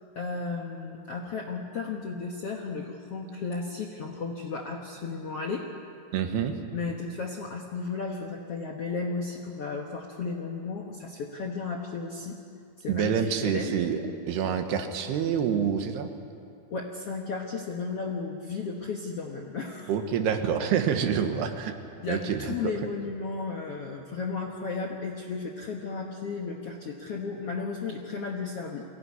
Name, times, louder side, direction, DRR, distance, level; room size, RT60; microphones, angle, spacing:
voice 1, 0.1-5.6 6.7-12.4 12.8-13.8 16.7-19.9 22.0-28.8, left 4 dB, 65° left, 0 dB, 1.5 m, -34 dB
voice 2, 6.1-6.5 12.9-16.1 19.9-21.8 22.1-22.5, right 7 dB, 85° right, 6 dB, 3.4 m, -27 dB
23.0 x 17.0 x 9.6 m, 2.5 s
omnidirectional pair, 4.6 m